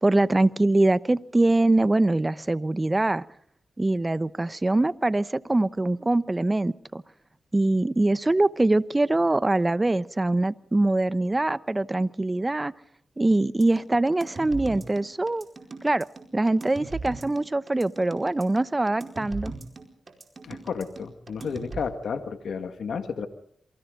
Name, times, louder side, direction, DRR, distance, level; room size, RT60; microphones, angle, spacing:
voice 1, 0.0-3.2 3.8-7.0 7.5-12.7 13.2-15.4 15.8-16.1 16.3-19.5, right 2 dB, 25° right, 16 dB, 1.0 m, -23 dB
sound 1, 13.6-21.8, right 3 dB, 45° right, 4.7 m, -39 dB
voice 2, 20.4-23.3, left 6 dB, 80° left, 8 dB, 1.9 m, -32 dB
28.0 x 24.0 x 3.9 m, 0.64 s
cardioid pair, 60°, 0 cm